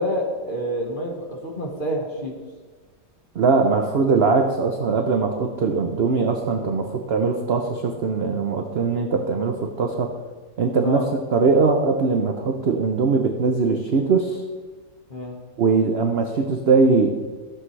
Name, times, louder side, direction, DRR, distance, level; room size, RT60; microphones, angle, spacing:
voice 1, 0.0-2.3 10.8-11.1 15.1-15.3, equal, 30° left, -1 dB, 1.5 m, -27 dB
voice 2, 3.3-10.1 10.6-11.0 11.3-14.4 15.6-17.1, right 4 dB, 55° right, 4 dB, 0.7 m, -21 dB
14.5 x 7.5 x 3.2 m, 1.3 s
omnidirectional pair, 1.8 m